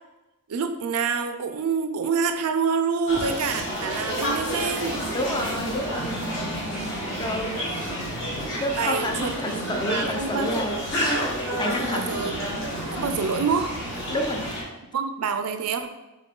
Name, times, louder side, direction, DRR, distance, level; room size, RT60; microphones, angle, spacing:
voice 1, 0.5-5.0 8.7-10.9 11.8-12.4 12.9-13.8 14.9-15.9, right 5 dB, 75° right, 8 dB, 0.4 m, -27 dB
sound 1, 3.1-14.6, equal, 55° left, 1.4 m, -29 dB
voice 2, 5.1-6.5 7.2-8.0 8.6-10.8 11.6-12.1 14.1-14.5, left 1 dB, 20° left, 3 dB, 0.5 m, -29 dB
3.8 x 3.7 x 3.7 m, 1.0 s
head